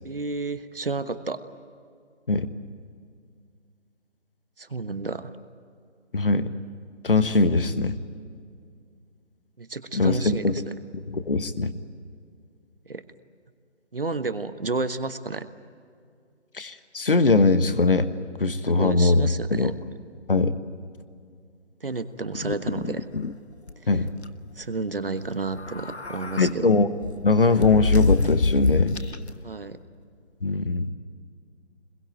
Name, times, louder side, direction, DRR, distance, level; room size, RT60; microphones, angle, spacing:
voice 1, 0.0-1.4 4.6-5.3 9.6-10.6 12.9-13.0 13.9-15.5 18.8-19.7 21.8-23.1 23.8-23.9 24.6-26.7 29.4-29.8, right 3 dB, 50° right, 11 dB, 1.3 m, -31 dB
voice 2, 6.1-6.5 7.0-7.9 9.9-10.5 11.1-11.7 16.5-18.1 18.4-19.7 20.3-20.5 23.9-24.1 26.4-26.9 27.2-29.0 30.4-30.9, left 3 dB, 50° left, 12 dB, 1.3 m, -21 dB
sound 1, 22.3-23.3 23.7-23.8 24.1-24.3 25.5-26.5 27.0-29.3, left 3 dB, 65° left, 1.2 m, -26 dB
25.0 x 22.0 x 9.1 m, 2.2 s
figure-of-eight pair, 155°, 35 cm